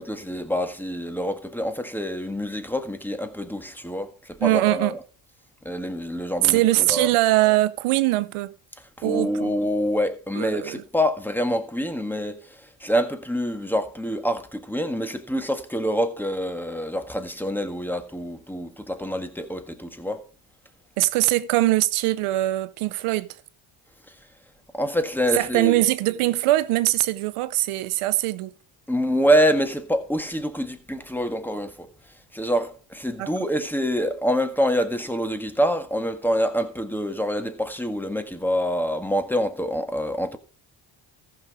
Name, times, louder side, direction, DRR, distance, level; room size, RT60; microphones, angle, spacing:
voice 1, 0.0-5.0 5.6-7.1 9.0-20.2 24.7-25.8 28.9-31.9 32.3-40.4, equal, 5° left, 1.6 m, -26 dB
voice 2, 4.4-4.9 6.4-8.5 9.0-9.5 10.4-10.8 21.0-23.3 25.3-28.5 33.2-33.3, right 17 dB, 85° right, 0.8 m, -22 dB
14.5 x 6.2 x 4.9 m
cardioid pair, 75°, 49 cm